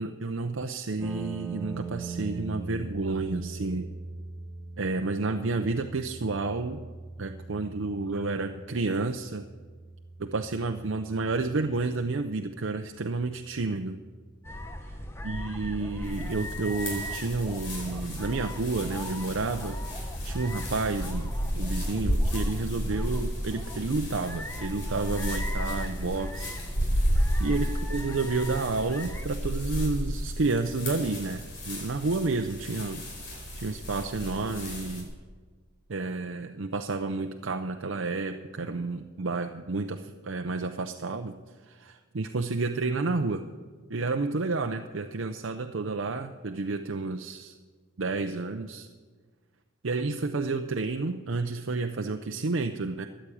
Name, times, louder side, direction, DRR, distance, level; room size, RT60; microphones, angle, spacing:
voice 1, 0.0-3.9 4.8-6.8 7.2-9.5 10.2-14.0 15.2-19.8 20.2-26.6 27.4-33.0 33.6-35.1 35.9-41.4 41.7-43.5 43.9-47.6 48.0-48.9 49.8-53.1, right 3 dB, 70° right, 5 dB, 0.6 m, -30 dB
sound 1, 1.0-15.0, right 3 dB, 10° right, 1.9 m, -42 dB
sound 2, 14.4-29.3, equal, 10° left, 0.8 m, -39 dB
sound 3, 16.0-35.0, equal, 55° left, 4.6 m, -33 dB
14.0 x 10.0 x 8.5 m, 1.5 s
head